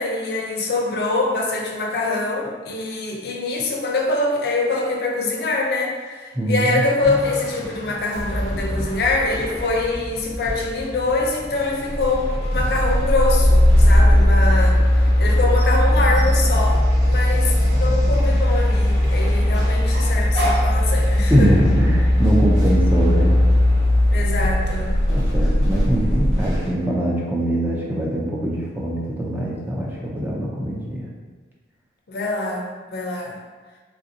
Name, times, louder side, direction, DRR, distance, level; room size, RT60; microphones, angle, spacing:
voice 1, 0.0-21.5 24.1-24.9 32.1-33.4, left 2 dB, 60° left, 0 dB, 0.4 m, -24 dB
voice 2, 6.3-6.8 21.3-23.4 25.1-31.1, right 1 dB, 10° right, -4 dB, 0.4 m, -22 dB
sound 1, 7.0-26.7, equal, 90° right, 0.9 m, -33 dB
sound 2, 11.9-26.6, left 1 dB, 40° left, 0.9 m, -18 dB
sound 3, 12.5-14.6 15.6-18.8 19.9-20.8, equal, 60° right, 0.6 m, -33 dB
3.2 x 2.6 x 2.6 m, 1.4 s
head